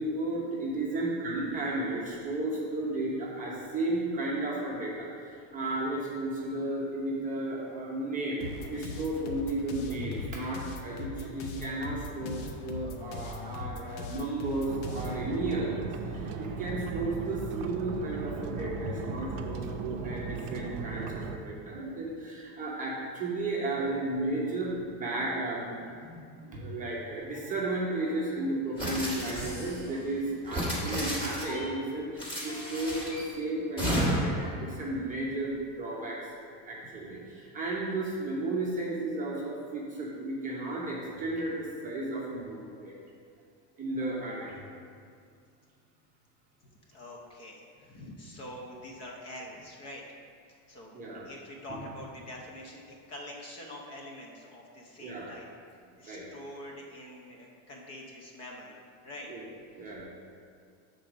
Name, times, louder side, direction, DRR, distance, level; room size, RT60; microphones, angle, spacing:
voice 1, 0.0-42.9 43.8-44.5 50.9-51.2 55.0-55.3 56.0-56.2 59.3-59.4 59.7-60.1, right 2 dB, 20° right, -5 dB, 0.7 m, -34 dB
sound 1, 8.4-15.2, left 3 dB, 75° left, 0.9 m, -40 dB
sound 2, 14.7-21.4, right 5 dB, 60° right, 0.6 m, -37 dB
sound 3, 28.8-29.8 30.4-31.6 32.2-33.2 33.8-34.4, right 1 dB, 10° left, 1.3 m, -32 dB
voice 2, 46.9-50.1 50.5-51.0 51.2-55.5 56.0-59.3, left 1 dB, 35° left, -1 dB, 0.8 m, -45 dB
6.3 x 4.0 x 6.1 m, 2.2 s
supercardioid pair, 165°, 46 cm